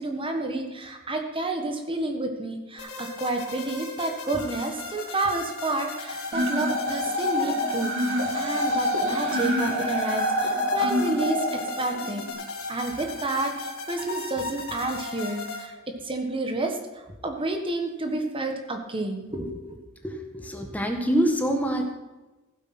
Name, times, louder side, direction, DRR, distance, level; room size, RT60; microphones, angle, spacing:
voice 1, 0.0-12.2 12.7-16.8 17.2-19.8, right 2 dB, 25° right, 4 dB, 1.4 m, -30 dB
sound 1, 2.8-15.7, left 3 dB, 90° left, 4.0 m, -37 dB
sound 2, 6.3-12.3, left 1 dB, 65° right, 2.8 m, -26 dB
voice 2, 20.0-21.9, right 1 dB, 10° left, 3 dB, 1.4 m, -25 dB
15.5 x 8.2 x 6.0 m, 1.1 s
head